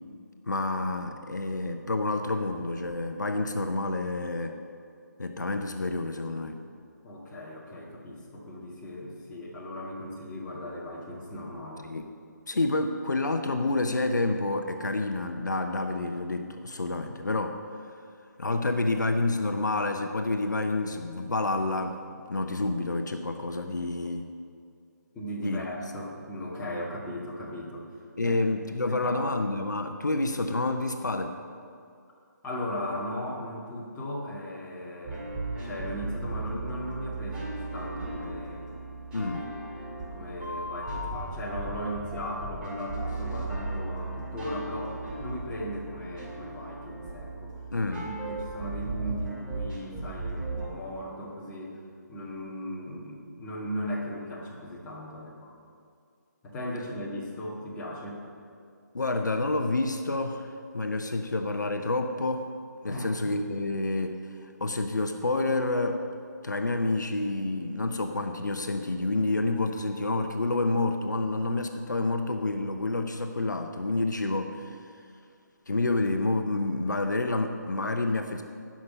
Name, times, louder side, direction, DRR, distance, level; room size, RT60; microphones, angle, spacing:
voice 1, 0.5-4.6 5.2-6.6 11.8-12.0 12.5-17.6 18.4-22.0 22.3-24.3 25.4-25.6 28.2-31.4 39.1-39.5 47.7-48.1 58.9-62.5 62.8-64.2 64.4-66.0 66.4-74.9 75.7-78.4, left 2 dB, 70° left, 6 dB, 0.8 m, -28 dB
voice 2, 7.0-11.9 25.1-28.4 28.9-29.2 32.4-35.2 35.6-38.6 40.1-47.6 48.0-51.8 52.1-55.5 56.4-58.2 62.9-63.4, equal, 10° left, -6 dB, 2.0 m, -37 dB
sound 1, 35.0-50.7, right 2 dB, 10° right, 2.1 m, -36 dB
17.0 x 6.1 x 5.5 m, 2.3 s
figure-of-eight pair, 145°, 10 cm